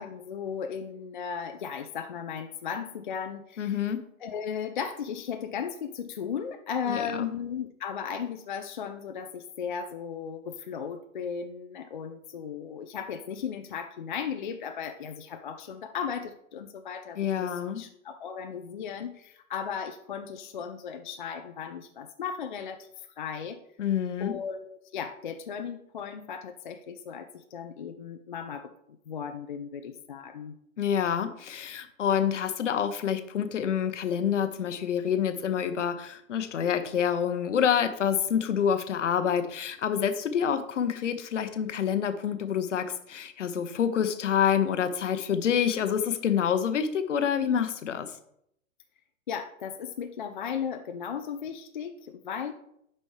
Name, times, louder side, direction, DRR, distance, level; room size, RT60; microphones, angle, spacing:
voice 1, 0.0-3.8 4.2-23.6 24.2-30.6 49.3-52.5, left 7 dB, 40° left, 6 dB, 0.4 m, -36 dB
voice 2, 3.6-4.0 6.9-7.3 17.2-17.8 23.8-24.4 30.8-48.1, left 8 dB, 60° left, 10 dB, 0.8 m, -27 dB
8.4 x 5.3 x 3.2 m, 0.74 s
figure-of-eight pair, 115°, 42 cm